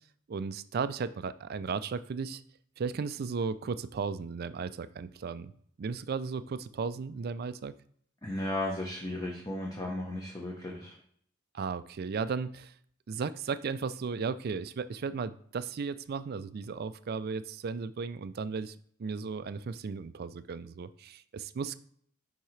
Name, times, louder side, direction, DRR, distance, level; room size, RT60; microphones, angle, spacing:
voice 1, 0.3-2.4 2.8-5.5 5.8-7.7 11.5-12.7 13.1-21.7, right 5 dB, 50° right, 13 dB, 0.4 m, -35 dB
voice 2, 8.2-10.9, left 1 dB, 20° left, -1 dB, 0.9 m, -35 dB
10.0 x 3.7 x 3.2 m, 0.63 s
head